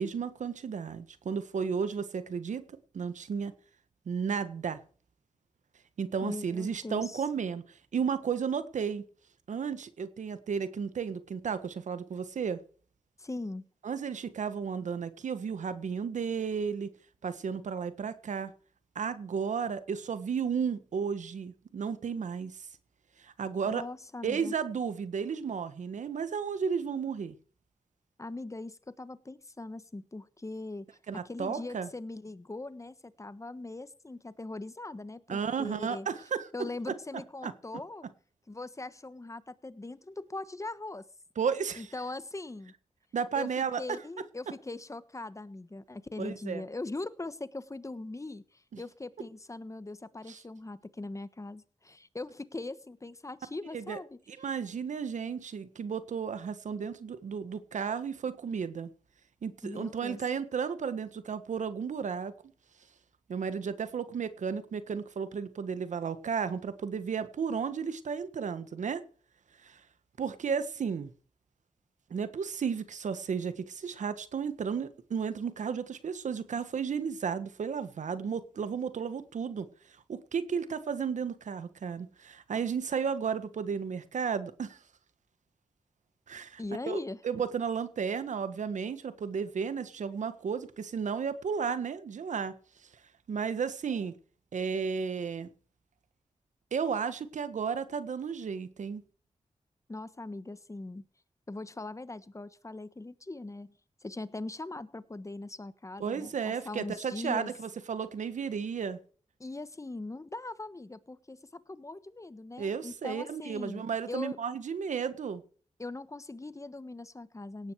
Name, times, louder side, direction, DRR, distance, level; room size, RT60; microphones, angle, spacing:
voice 1, 0.0-2.6 2.9-3.5 4.1-4.8 6.0-7.6 7.9-9.0 9.5-12.6 13.8-16.9 17.2-18.5 18.9-22.5 23.2-23.8 24.2-27.3 31.1-31.9 35.3-36.5 36.9-37.0 37.4-37.5 41.4-41.9 43.1-44.0 46.2-46.6 48.7-48.8 50.3-50.4 53.7-54.0 54.3-58.9 59.4-62.3 63.3-69.0 69.6-69.8 70.2-71.1 72.1-79.7 80.1-84.8 86.3-86.6 86.9-87.0 87.2-92.5 93.3-94.1 94.5-95.5 96.7-99.0 106.0-109.0 112.6-115.4, right 6 dB, 85° right, 1.5 m, -33 dB
voice 2, 6.2-7.2 13.2-13.6 23.6-24.5 28.2-30.9 31.2-36.1 36.5-38.1 38.5-41.0 41.8-42.7 43.4-43.5 43.8-54.2 59.6-60.2 86.6-87.2 99.9-101.0 101.5-103.7 104.0-107.5 109.4-114.4 115.8-117.7, left 2 dB, 25° left, 1.4 m, -41 dB
17.5 x 9.6 x 4.8 m
cardioid pair, 60°, 12 cm